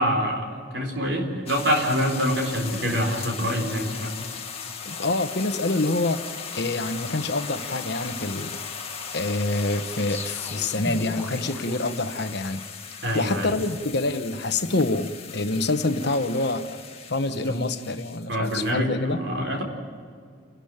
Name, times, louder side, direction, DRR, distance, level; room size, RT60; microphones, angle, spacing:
voice 1, 0.0-4.1 13.0-13.5 17.6-17.7 18.3-19.6, equal, 60° right, 4.1 m, -25 dB
sound 1, 1.5-18.7, left 6 dB, 30° left, 2.0 m, -38 dB
voice 2, 4.8-8.8 9.1-12.6 13.1-16.8 17.1-19.2, left 2 dB, 55° left, 1.1 m, -26 dB
sound 2, 10.1-12.9, left 1 dB, 10° left, 1.9 m, -38 dB
28.5 x 12.5 x 8.9 m
head